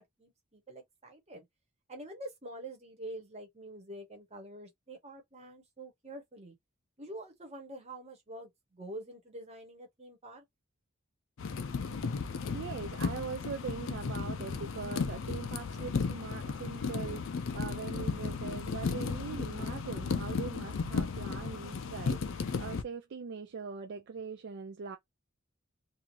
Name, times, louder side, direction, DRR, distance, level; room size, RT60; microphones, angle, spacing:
voice 1, 0.0-1.4 1.9-6.5 7.0-10.4, right 1 dB, 30° right, 1.1 m, -46 dB
sound 1, 11.4-22.8, left 5 dB, 65° left, 0.4 m, -35 dB
voice 2, 12.5-25.0, right 5 dB, 55° right, 0.4 m, -42 dB
2.6 x 2.3 x 3.0 m
head